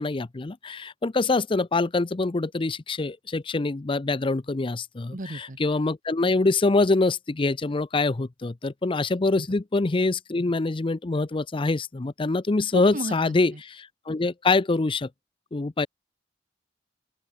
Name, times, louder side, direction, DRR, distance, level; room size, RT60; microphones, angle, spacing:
voice 1, 0.0-15.1 15.5-15.9, left 3 dB, 25° left, 0.5 m, -25 dB
voice 2, 5.1-5.6 9.4-9.5 12.7-13.3, right 2 dB, 45° right, 1.3 m, -33 dB
open air
head